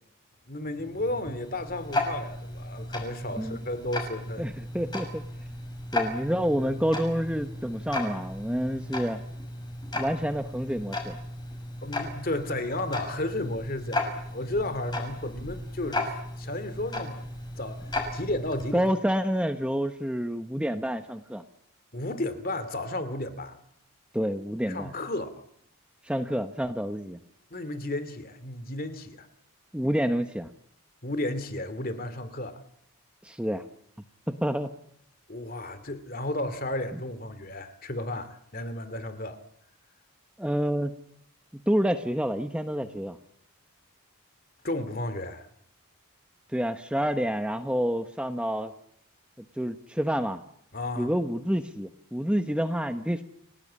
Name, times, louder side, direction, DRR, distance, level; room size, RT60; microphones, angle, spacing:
voice 1, 0.5-4.4 11.8-16.1 16.4-17.2 17.6-18.8 21.9-23.6 24.7-25.4 27.5-29.3 31.0-32.6 35.3-39.4 44.6-45.5 50.7-51.1, left 1 dB, 40° left, 2.5 m, -33 dB
Tick-tock, 0.6-18.9, left 2 dB, 20° left, 6.4 m, -35 dB
voice 2, 4.4-5.2 5.9-9.2 9.9-11.2 18.7-21.4 24.1-24.9 26.0-27.2 29.7-30.5 33.2-33.6 34.3-34.7 40.4-40.9 41.7-43.2 46.5-48.7 49.6-50.4 51.0-53.2, equal, 5° right, 1.0 m, -28 dB
30.0 x 18.0 x 8.7 m
head